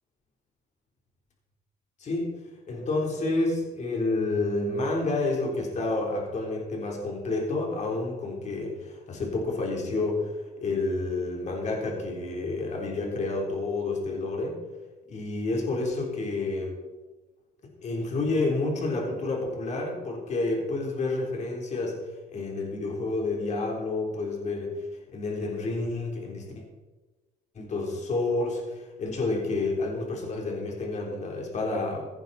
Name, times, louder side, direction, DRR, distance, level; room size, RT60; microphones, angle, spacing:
voice 1, 2.0-2.3 2.7-14.6 15.1-16.8 17.8-22.0 22.3-24.8 25.1-26.5 27.6-32.1, left 2 dB, 45° left, -1 dB, 3.6 m, -29 dB
16.0 x 10.5 x 4.2 m, 1.2 s
cardioid pair, 110°, 17 cm